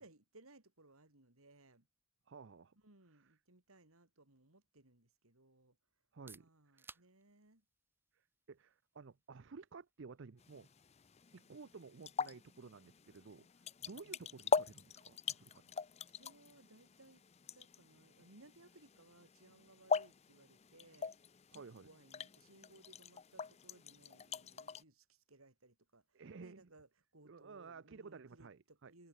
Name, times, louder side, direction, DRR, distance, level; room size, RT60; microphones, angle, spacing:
voice 1, 0.0-1.9 2.8-5.8 6.3-7.7 14.0-14.2 16.1-17.2 17.5-21.1 21.5-29.1, right 2 dB, 75° right, 3.6 m, -64 dB
voice 2, 2.3-2.8 6.1-7.0 8.1-10.7 11.3-13.5 13.8-15.7 21.5-21.9 26.1-26.7 27.2-28.9, right 4 dB, 55° right, 0.5 m, -54 dB
sound 1, 6.0-21.6, right 3 dB, 10° right, 6.5 m, -68 dB
sound 2, 10.4-24.8, left 5 dB, 30° left, 0.5 m, -42 dB
head